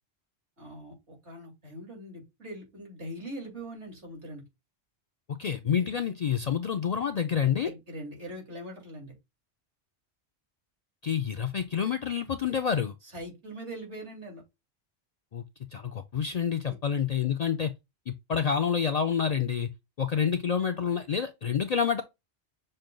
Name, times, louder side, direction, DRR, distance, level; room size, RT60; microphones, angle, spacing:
voice 1, 0.6-4.4 7.6-9.1 13.0-14.4 16.7-16.8, right 1 dB, 80° right, 2.9 m, -42 dB
voice 2, 5.4-7.7 11.0-12.9 15.3-15.4 15.7-17.7 18.1-19.7 20.0-22.0, left 7 dB, 60° left, 0.4 m, -28 dB
6.5 x 2.2 x 3.7 m
omnidirectional pair, 1.1 m